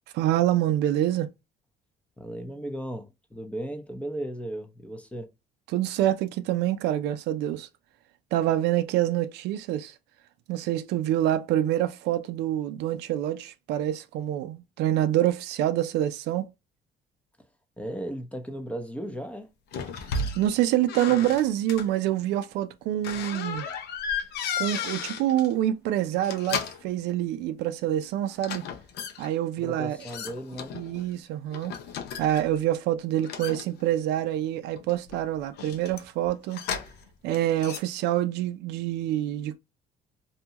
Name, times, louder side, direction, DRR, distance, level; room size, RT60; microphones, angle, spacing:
voice 1, 0.1-1.3 5.7-7.7 8.3-9.9 10.5-16.5 20.4-23.7 24.6-28.6 29.2-30.0 30.7-31.7 32.2-36.6 37.2-39.6, right 12 dB, 85° right, 0.4 m, -26 dB
voice 2, 2.2-5.3 17.8-19.5 29.6-30.7, right 1 dB, 5° left, 0.6 m, -36 dB
sound 1, 19.7-20.5 20.9-21.9 23.0-25.5 26.1-26.9 28.4-29.3 30.0-31.1 31.5-32.6 33.2-34.2 34.8-37.1 37.3-37.8, left 5 dB, 75° left, 0.6 m, -34 dB
2.8 x 2.2 x 2.8 m
cardioid pair, 110°, 17 cm